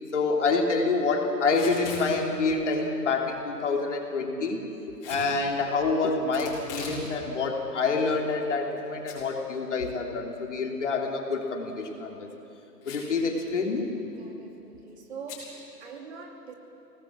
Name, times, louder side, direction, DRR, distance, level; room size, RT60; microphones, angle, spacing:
voice 1, 0.1-4.6 5.1-12.3 12.8-13.9, left 4 dB, 45° left, 1 dB, 3.1 m, -27 dB
Packing tape duct tape / Tearing, 1.4-2.1 5.0-5.3 6.3-7.0 7.4-7.5 8.2-8.8 9.1-9.2 9.6-9.7 11.6-11.9 12.8-13.2 13.5-13.6 13.8-14.2 15.3-15.5, left 4 dB, 20° left, 6.3 m, -40 dB
voice 2, 14.1-16.5, right 5 dB, 40° right, 2 dB, 2.7 m, -43 dB
25.0 x 19.0 x 7.6 m, 3.0 s
hypercardioid pair, 160°, 49 cm